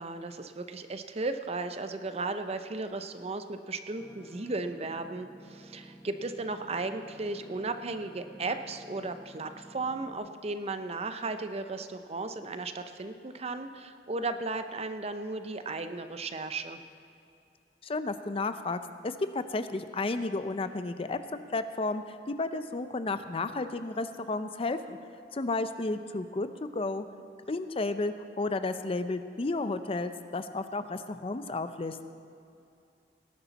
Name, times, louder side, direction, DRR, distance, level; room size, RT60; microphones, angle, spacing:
voice 1, 0.0-16.8, right 3 dB, 35° right, 9 dB, 0.6 m, -35 dB
sound 1, 4.0-10.1, equal, 10° left, 0.9 m, -51 dB
voice 2, 17.8-25.0 25.3-27.1 27.5-32.0, left 3 dB, 30° left, 10 dB, 0.5 m, -32 dB
19.0 x 11.0 x 4.1 m, 2.6 s
head